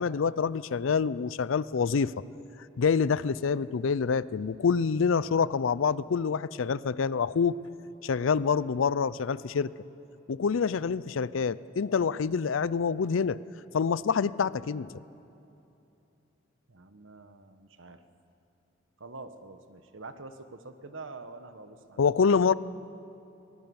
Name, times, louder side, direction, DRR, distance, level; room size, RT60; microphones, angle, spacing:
voice 1, 0.0-2.2 2.8-7.6 8.0-9.7 10.3-13.4 13.7-14.9 22.0-22.5, left 5 dB, 85° left, 18 dB, 0.5 m, -26 dB
voice 2, 16.7-18.0 19.0-22.0, right 3 dB, 80° right, 10 dB, 1.2 m, -46 dB
22.0 x 20.5 x 7.0 m, 2.9 s
head